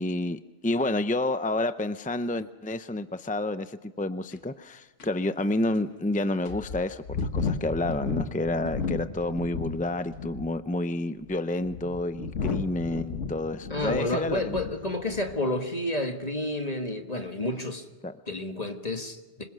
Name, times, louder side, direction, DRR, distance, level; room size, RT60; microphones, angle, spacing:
voice 1, 0.0-14.6 18.0-18.1, left 2 dB, 15° left, 11 dB, 0.3 m, -29 dB
sound 1, 4.3-4.4 5.0-5.1 5.7-5.8 6.5-9.8 10.1-10.6 11.3-14.8 15.1-15.4, left 5 dB, 75° left, 1.7 m, -33 dB
voice 2, 13.7-17.8 18.3-19.4, left 1 dB, 30° left, 5 dB, 1.7 m, -30 dB
26.5 x 21.0 x 6.3 m, 1.2 s
omnidirectional pair, 1.3 m